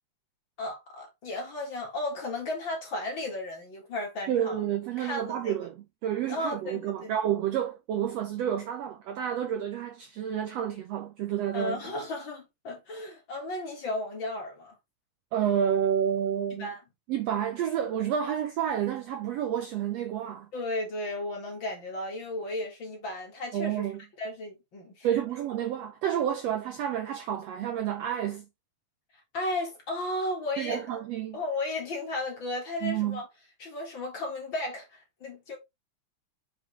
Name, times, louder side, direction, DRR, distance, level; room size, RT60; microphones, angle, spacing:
voice 1, 0.6-4.6 5.0-5.5 6.3-7.1 11.5-14.8 16.5-16.8 20.5-23.9 24.2-25.1 29.3-31.0 31.3-33.3 33.6-35.6, left 2 dB, 40° left, 2.4 m, -34 dB
voice 2, 4.3-11.8 15.3-16.7 17.1-20.5 23.5-24.0 25.0-28.5 30.6-31.4 32.8-33.2, right 9 dB, 75° right, 1.5 m, -30 dB
6.5 x 5.0 x 3.3 m
omnidirectional pair, 3.7 m